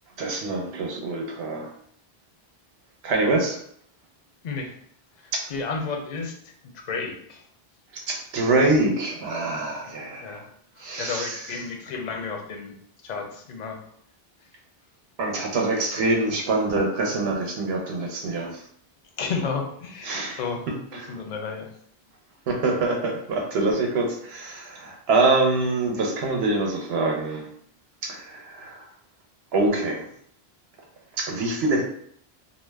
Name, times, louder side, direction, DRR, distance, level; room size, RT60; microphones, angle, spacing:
voice 1, 0.2-1.7 3.0-3.6 5.3-5.4 7.9-10.4 10.8-11.5 15.2-18.6 20.0-20.4 20.9-21.2 22.5-27.5 28.0-28.8 29.5-30.0 31.2-31.8, right 2 dB, 85° right, 1 dB, 0.9 m, -25 dB
voice 2, 4.4-4.7 5.5-6.3 6.9-7.4 9.8-9.9 10.2-10.4 11.0-12.7 13.0-13.8 19.2-20.6 20.9-21.7, left 4 dB, 55° left, 2 dB, 0.6 m, -31 dB
2.4 x 2.1 x 3.3 m, 0.65 s
omnidirectional pair, 1.0 m